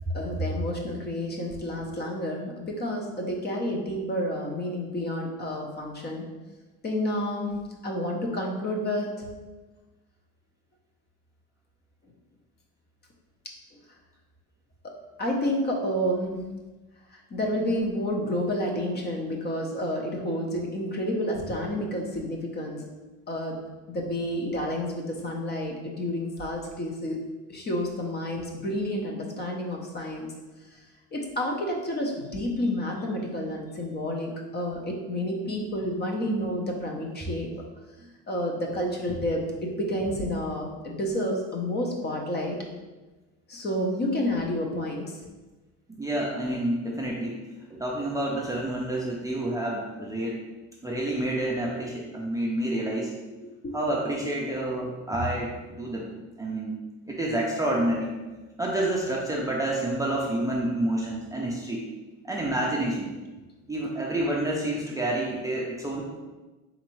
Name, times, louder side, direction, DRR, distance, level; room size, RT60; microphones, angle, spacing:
voice 1, 0.1-6.3 6.8-7.6 7.8-9.3 14.8-16.4 17.1-22.8 23.3-23.6 23.9-27.2 27.5-30.3 30.7-30.8 31.1-37.5 38.3-42.6 43.5-45.2 53.4-53.7 62.4-62.5, left 1 dB, 30° left, 1 dB, 0.7 m, -30 dB
voice 2, 46.0-47.4 47.7-50.4 50.8-53.1 53.7-56.1 56.4-56.8 57.1-58.1 58.6-61.9 62.2-63.1 63.7-66.0, right 1 dB, 10° right, -4 dB, 0.5 m, -28 dB
3.9 x 3.3 x 3.1 m, 1.2 s
cardioid pair, 120°, 33 cm